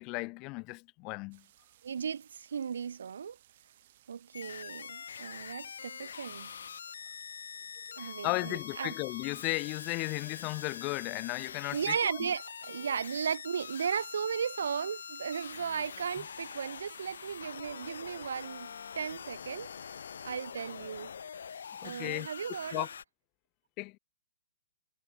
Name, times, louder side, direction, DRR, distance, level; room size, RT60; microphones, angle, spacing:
voice 1, 0.0-1.4 8.0-12.2 16.2-16.3 21.8-22.3 22.7-22.9 23.8-24.0, left 27 dB, 25° left, 0.5 m, -35 dB
sound 1, 1.3-17.4, right 14 dB, 40° right, 4.9 m, -64 dB
voice 2, 1.8-3.4 4.1-6.5 8.0-8.9 11.7-18.7 19.0-19.7 20.2-21.1 21.8-22.9, right 7 dB, 75° right, 0.6 m, -35 dB
sound 2, 4.3-23.0, left 7 dB, 75° left, 1.3 m, -44 dB
hypercardioid pair, 160°, 0 cm